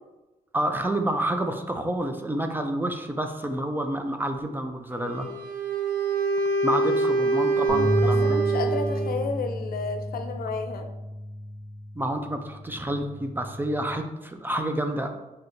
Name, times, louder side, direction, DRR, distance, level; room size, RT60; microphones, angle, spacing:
voice 1, 0.5-5.3 6.6-8.4 12.0-15.1, right 1 dB, 15° right, 5 dB, 0.3 m, -28 dB
Wind instrument woodwind instrument, 5.0-9.3, right 3 dB, 70° right, 0.7 m, -25 dB
sound 1, 7.7-13.9, equal, 45° right, 1.2 m, -31 dB
voice 2, 8.0-10.9, left 4 dB, 75° left, 6 dB, 0.5 m, -32 dB
5.9 x 2.7 x 2.6 m, 1.0 s
wide cardioid pair, 145°, 15 cm